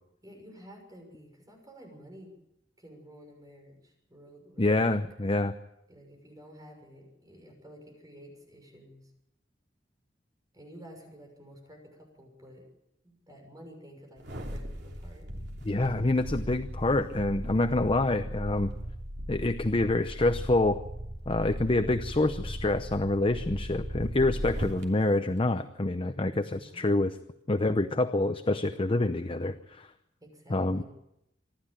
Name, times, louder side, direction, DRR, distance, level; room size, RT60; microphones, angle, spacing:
voice 1, 0.2-2.3 2.8-5.0 5.9-9.1 10.5-12.7 13.0-15.3 26.3-26.9 30.2-30.8, equal, 20° right, 3 dB, 6.4 m, -51 dB
voice 2, 4.6-5.5 15.6-18.7 19.3-20.8 21.3-27.1 27.5-29.9 30.5-30.8, left 2 dB, 30° left, 9 dB, 0.7 m, -27 dB
sound 1, 14.2-24.8 25.3-25.4, equal, 65° right, 3.1 m, -38 dB
26.5 x 12.0 x 8.9 m, 0.85 s
head